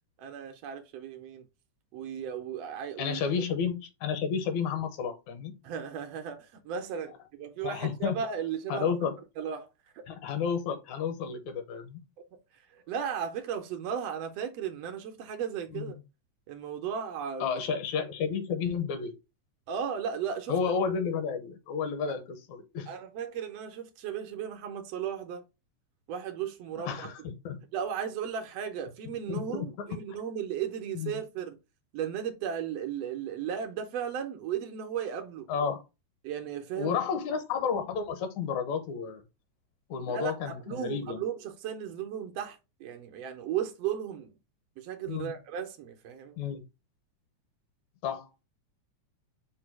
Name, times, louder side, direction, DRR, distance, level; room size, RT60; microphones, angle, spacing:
voice 1, 0.2-1.4 1.9-3.2 5.6-8.9 9.4-9.7 9.9-10.0 12.7-16.0 16.5-17.6 19.7-20.5 22.1-22.2 22.9-25.5 26.1-27.1 27.7-31.6 31.9-35.5 36.2-37.0 40.1-44.4 44.8-46.4, right 8 dB, 75° right, 1.5 m, -35 dB
voice 2, 3.0-5.6 7.6-8.2 8.7-9.1 10.1-12.0 15.7-15.9 17.4-19.1 20.5-22.9 26.9-27.6 29.3-30.0 31.0-31.1 35.5-35.8 36.8-39.2 39.9-41.2 45.1-45.4 46.4-46.6 48.0-48.3, left 6 dB, 80° left, 2.1 m, -31 dB
4.6 x 2.2 x 4.4 m
omnidirectional pair, 3.4 m